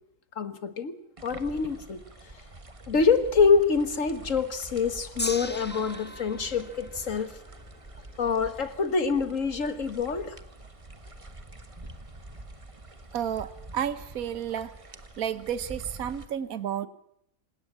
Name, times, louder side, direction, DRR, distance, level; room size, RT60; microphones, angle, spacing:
voice 1, 0.4-1.0 1.2-2.0 2.9-7.3 8.2-10.4, left 5 dB, 55° left, 10 dB, 1.8 m, -25 dB
sound 1, 1.2-16.3, right 2 dB, 20° right, 1.4 m, -46 dB
Gong, 5.2-11.5 12.3-12.4, left 1 dB, 10° left, 0.8 m, -41 dB
Piano, 5.7-7.7, right 4 dB, 40° right, 5.4 m, -52 dB
voice 2, 13.1-14.7 15.2-16.9, right 9 dB, 65° right, 13 dB, 1.5 m, -31 dB
27.5 x 17.5 x 7.3 m, 0.75 s
omnidirectional pair, 1.6 m